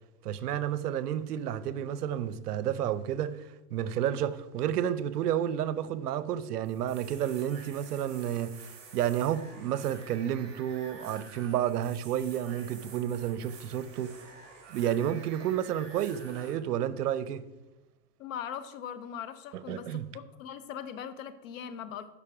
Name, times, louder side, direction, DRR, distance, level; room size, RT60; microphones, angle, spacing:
voice 1, 0.2-14.2 14.7-17.4 19.5-20.0, right 10 dB, 70° right, 0.8 m, -31 dB
sound 1, 6.6-16.5, right 4 dB, 30° right, 3.6 m, -50 dB
voice 2, 18.2-22.1, left 8 dB, 55° left, 1.0 m, -40 dB
12.0 x 5.6 x 4.9 m
hypercardioid pair, 145°, 48 cm